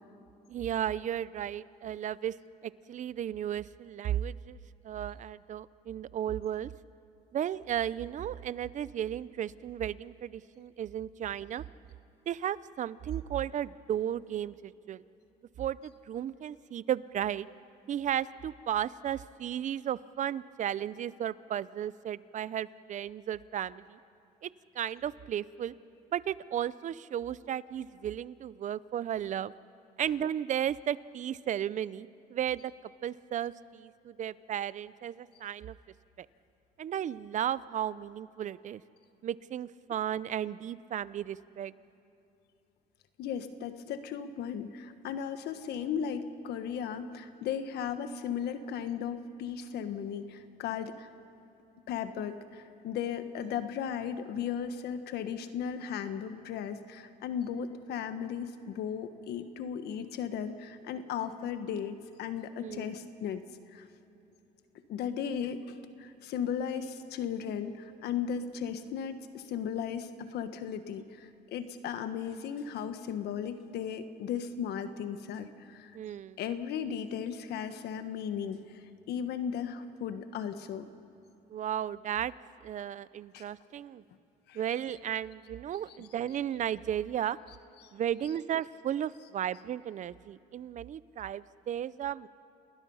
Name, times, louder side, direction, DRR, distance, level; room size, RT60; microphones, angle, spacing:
voice 1, 0.5-2.4 2.6-4.6 4.8-6.7 7.3-11.6 12.3-15.0 15.6-17.5 17.9-24.0 24.4-24.5 24.7-25.7 26.1-29.5 30.0-32.7 33.0-35.8 36.2-36.3 36.8-38.8 39.2-41.7 62.6-62.9 75.9-76.4 81.5-82.3 82.6-84.0 84.5-87.4 87.9-92.3, right 10 dB, 45° right, 18 dB, 0.6 m, -34 dB
voice 2, 43.2-51.1 51.9-63.4 63.7-63.8 64.9-75.9 76.4-80.9 83.3-83.5 84.5-84.6 87.8-87.9, left 8 dB, 75° left, 10 dB, 1.4 m, -36 dB
29.0 x 20.0 x 5.6 m, 2.9 s
cardioid pair, 110°, 17 cm